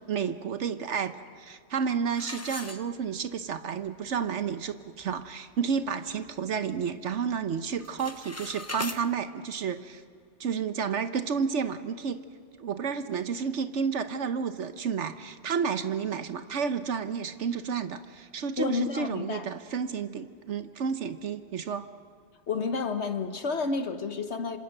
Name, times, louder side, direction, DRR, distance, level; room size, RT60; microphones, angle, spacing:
voice 1, 0.1-10.0 10.4-12.2 12.6-21.9, right 6 dB, 75° right, 10 dB, 1.2 m, -31 dB
sound 1, 2.1-3.4 3.9-4.0 4.5-4.6 5.0-5.3 5.8-6.9 7.1-7.5 7.7-9.0, left 2 dB, 15° left, 0.7 m, -40 dB
voice 2, 18.6-19.5 22.5-24.6, left 4 dB, 65° left, 8 dB, 1.4 m, -30 dB
27.0 x 26.5 x 6.6 m, 2.2 s
omnidirectional pair, 1.2 m